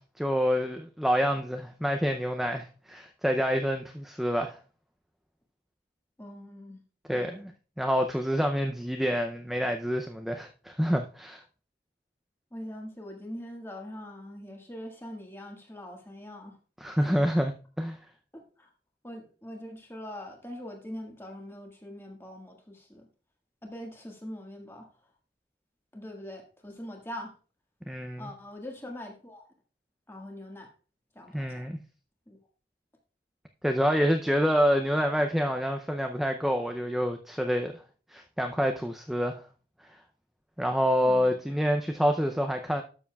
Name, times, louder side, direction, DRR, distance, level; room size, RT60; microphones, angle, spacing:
voice 1, 0.0-4.6 7.1-7.5 7.8-11.4 16.8-17.5 17.8-18.0 27.9-28.3 31.3-31.8 33.6-37.8 38.1-39.4 40.6-42.8, equal, ahead, 0.4 m, -27 dB
voice 2, 6.2-6.8 7.1-7.4 12.5-16.6 17.0-17.2 18.3-18.7 19.0-23.1 23.6-24.9 25.9-27.3 28.2-29.4 30.1-30.7 31.1-31.7 32.3-32.4 41.0-41.4, left 1 dB, 15° left, 1.6 m, -42 dB
12.5 x 7.1 x 2.3 m
head